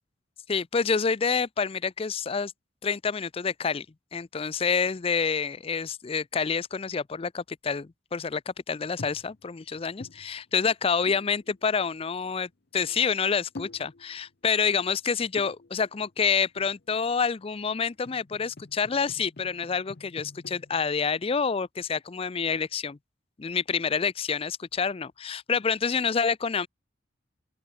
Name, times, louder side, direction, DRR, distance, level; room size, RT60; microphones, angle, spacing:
voice 1, 0.5-2.5 2.8-3.9 4.1-23.0 23.4-26.7, left 5 dB, 30° left, 0.4 m, -28 dB
sound 1, 8.9-9.5 9.7-10.7 11.1-11.8 12.4-12.5 12.7-13.3 13.6-14.3 15.2-16.1 16.6-17.1 17.8-21.0, left 2 dB, 55° left, 0.8 m, -47 dB
open air
head